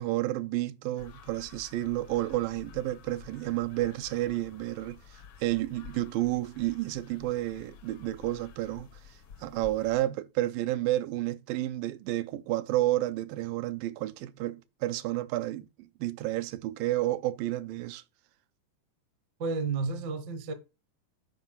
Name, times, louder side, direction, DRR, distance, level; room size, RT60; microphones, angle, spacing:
voice 1, 0.0-5.0 5.4-8.9 9.4-18.0, right 15 dB, 85° right, 2.3 m, -31 dB
sound 1, 1.0-10.0, left 7 dB, 85° left, 1.1 m, -51 dB
voice 2, 19.4-20.5, right 4 dB, 70° right, 1.0 m, -31 dB
9.2 x 5.2 x 5.6 m
omnidirectional pair, 3.9 m